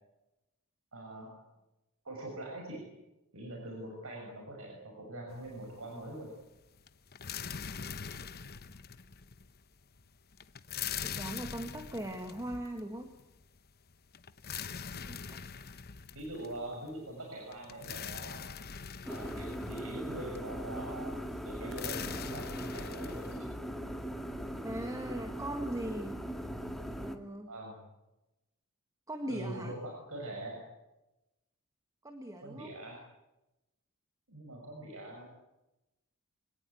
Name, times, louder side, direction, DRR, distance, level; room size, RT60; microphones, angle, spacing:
voice 1, 0.9-1.4 2.0-2.8 3.3-6.3 14.9-15.0 16.1-18.5 19.1-23.5 27.5-27.8 29.3-30.6 32.4-33.0 34.3-35.3, right 1 dB, 70° right, 0 dB, 6.4 m, -43 dB
sound 1, 5.3-5.9 6.2-23.4, left 7 dB, 45° left, 1.0 m, -43 dB
voice 2, 11.0-13.1 15.0-15.4 24.6-26.2 27.0-27.5 29.1-29.7 32.0-32.7, right 1 dB, 15° right, 6 dB, 1.8 m, -39 dB
sound 2, 19.1-27.2, equal, ahead, 1.9 m, -40 dB
25.0 x 18.5 x 9.3 m, 0.98 s
head